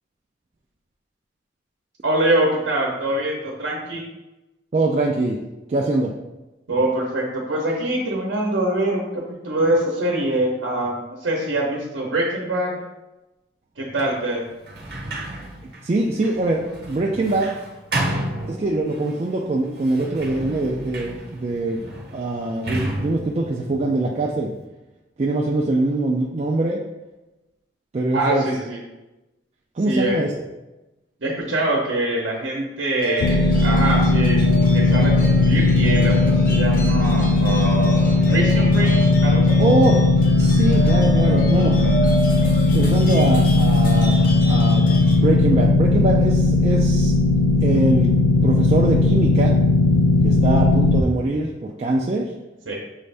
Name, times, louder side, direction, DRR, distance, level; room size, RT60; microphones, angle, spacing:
voice 1, 2.0-4.0 6.7-12.8 13.8-14.4 28.1-28.8 29.9-30.2 31.2-38.9 39.2-39.6 52.7-52.8, right 1 dB, 80° right, -2 dB, 0.8 m, -24 dB
voice 2, 4.7-5.4 5.7-6.1 15.6-17.5 18.5-21.8 22.1-24.5 25.2-26.8 27.9-28.4 29.8-30.3 39.6-41.8 42.5-44.9 45.2-47.1 47.6-48.1 48.4-49.6 50.2-52.3, right 2 dB, 35° right, -1 dB, 0.3 m, -23 dB
Sliding door, 14.6-19.1 19.8-24.6, right 1 dB, 55° right, 0.9 m, -32 dB
sound 1, 33.0-45.2, left 1 dB, 45° left, 0.8 m, -31 dB
sound 2, 33.2-51.0, left 3 dB, 85° left, 0.3 m, -17 dB
6.3 x 2.6 x 3.3 m, 1.0 s
head